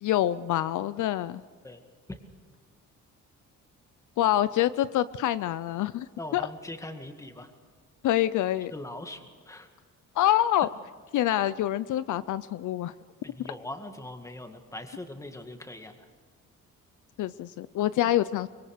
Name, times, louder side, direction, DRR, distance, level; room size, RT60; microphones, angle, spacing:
voice 1, 0.0-1.4 4.2-6.4 8.0-8.7 10.1-10.7 11.1-12.9 17.2-18.5, left 13 dB, 75° left, 15 dB, 0.6 m, -26 dB
voice 2, 6.2-7.5 8.7-9.7 13.2-15.9, left 1 dB, 10° left, 6 dB, 2.0 m, -41 dB
24.5 x 22.5 x 6.6 m, 1.5 s
cardioid pair, 130°, 31 cm